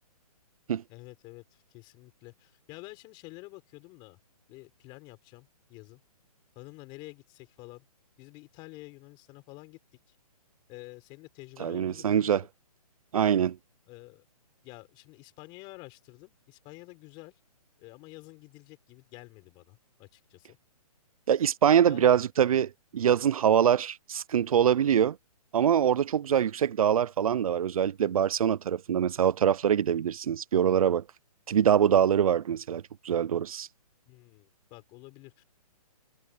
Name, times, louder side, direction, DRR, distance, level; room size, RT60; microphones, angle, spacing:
voice 1, 0.9-4.2 4.5-6.0 6.5-7.8 8.2-9.8 10.1-10.2 10.7-12.5 13.9-14.3 14.6-17.4 17.8-20.6 21.7-22.2 34.1-35.4, left 23 dB, 25° left, 5.8 m, -49 dB
voice 2, 11.6-12.4 13.1-13.6 21.3-25.2 25.5-31.0 31.5-33.7, right 9 dB, 65° right, 0.7 m, -24 dB
hypercardioid pair, 155°, 20 cm